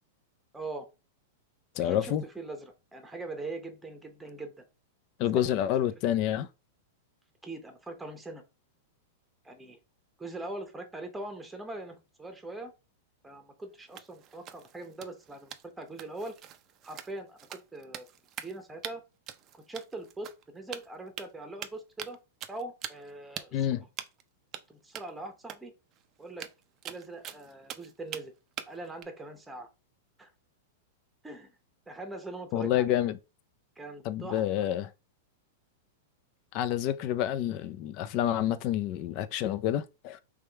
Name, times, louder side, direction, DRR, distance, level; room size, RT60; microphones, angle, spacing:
voice 1, 0.5-0.9 1.8-4.5 7.4-8.4 9.4-9.8 10.2-12.7 13.2-16.4 16.8-18.1 18.4-19.0 19.7-22.2 22.5-23.7 24.7-25.7 26.2-26.5 26.8-28.3 28.7-29.7 30.2-30.3 31.2-31.5 31.9-32.9 33.8-34.7, right 2 dB, 5° right, 0.9 m, -42 dB
voice 2, 1.8-2.2 5.2-6.5 23.5-23.8 32.5-33.2 34.0-34.9 36.5-40.2, left 11 dB, 40° left, 0.5 m, -28 dB
sound 1, 13.9-18.6 18.8-18.9 19.3-20.4 20.7-21.3 21.6-22.2 22.4-23.1 23.4-23.5 24.0-24.2 24.5-24.6 24.9-25.1 25.5-25.6 25.9-26.0 26.3-28.2 28.6-29.0, right 10 dB, 30° right, 0.5 m, -43 dB
3.5 x 3.2 x 4.5 m
supercardioid pair, 150°, 0 cm